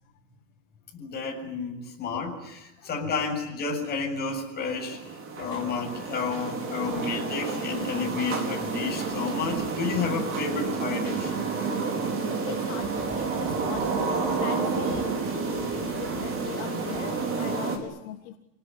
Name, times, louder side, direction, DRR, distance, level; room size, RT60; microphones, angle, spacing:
voice 1, 0.9-11.3, left 4 dB, 20° left, 0 dB, 7.3 m, -31 dB
sound 1, 4.6-17.8, right 4 dB, 25° right, 4.7 m, -30 dB
voice 2, 6.8-7.2 9.1-9.2 12.4-18.4, left 13 dB, 55° left, 6 dB, 1.9 m, -41 dB
27.5 x 19.0 x 9.9 m, 0.90 s
supercardioid pair, 165°, 50 cm